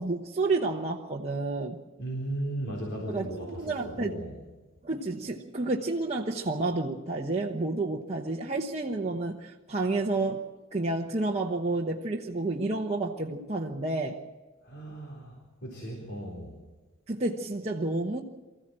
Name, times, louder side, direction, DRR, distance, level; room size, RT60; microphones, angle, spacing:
voice 1, 0.0-1.8 3.1-4.2 4.8-10.4 10.7-14.2 17.1-18.2, right 2 dB, 30° right, -2 dB, 1.1 m, -30 dB
voice 2, 2.0-4.4 14.6-16.6, right 1 dB, 55° left, -3 dB, 4.0 m, -36 dB
24.0 x 14.5 x 7.6 m, 1.2 s
head